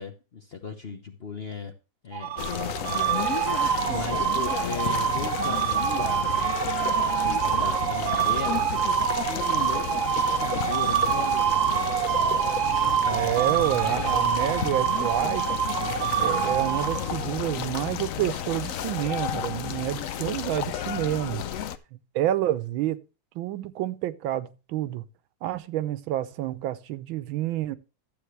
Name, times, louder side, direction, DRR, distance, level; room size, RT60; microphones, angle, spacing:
voice 1, 0.0-1.7 2.0-3.5 3.9-6.7 7.2-8.7 9.2-12.0 21.5-21.6, left 5 dB, 40° left, 0.9 m, -37 dB
sound 1, 2.1-17.4, right 9 dB, 60° right, 1.2 m, -26 dB
sound 2, 2.4-21.8, left 10 dB, 85° left, 0.7 m, -32 dB
voice 2, 3.9-4.2 13.0-15.6 16.2-21.4 22.1-23.0 23.3-25.0 25.4-27.8, right 13 dB, 80° right, 1.5 m, -29 dB
12.0 x 8.0 x 3.2 m
omnidirectional pair, 2.2 m